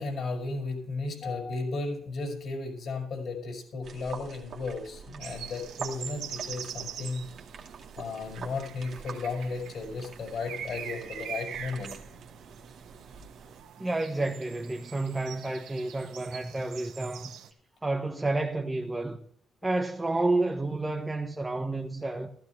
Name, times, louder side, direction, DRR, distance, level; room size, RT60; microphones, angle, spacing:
voice 1, 0.0-7.3 8.0-11.9, left 3 dB, 60° left, 5.8 m, -34 dB
sound 1, 3.8-13.6, right 5 dB, 55° right, 2.2 m, -46 dB
sound 2, 5.2-17.5, right 8 dB, 85° right, 1.8 m, -43 dB
voice 2, 13.8-17.3 17.8-19.2 19.6-22.3, right 2 dB, 15° right, 1.2 m, -30 dB
15.0 x 13.0 x 3.4 m
cardioid pair, 90°, 0 cm